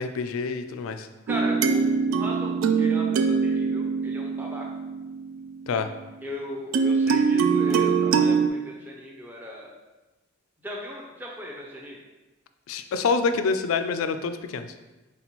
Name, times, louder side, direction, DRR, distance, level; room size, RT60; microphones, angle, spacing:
voice 1, 0.0-1.1 5.7-5.9 12.7-14.7, left 4 dB, 85° left, 9 dB, 0.3 m, -26 dB
voice 2, 1.3-4.7 6.2-9.7 10.6-12.0, equal, 10° right, -2 dB, 0.4 m, -37 dB
sound 1, 1.3-5.6 6.7-8.5, right 5 dB, 80° right, 0.3 m, -23 dB
4.1 x 3.7 x 2.9 m, 1.1 s
head